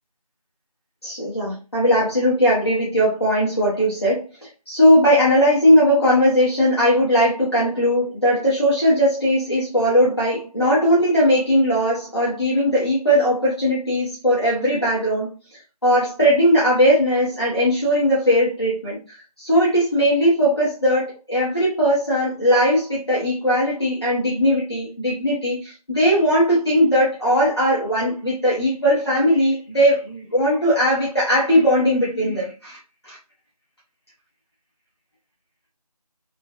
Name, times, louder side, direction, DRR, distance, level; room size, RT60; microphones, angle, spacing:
voice 1, 1.0-4.2 4.7-15.3 15.8-19.0 19.4-32.8 33.0-33.2, equal, 40° left, -7 dB, 1.2 m, -19 dB
3.7 x 2.5 x 2.4 m, 0.32 s
figure-of-eight pair, 175°, 20 cm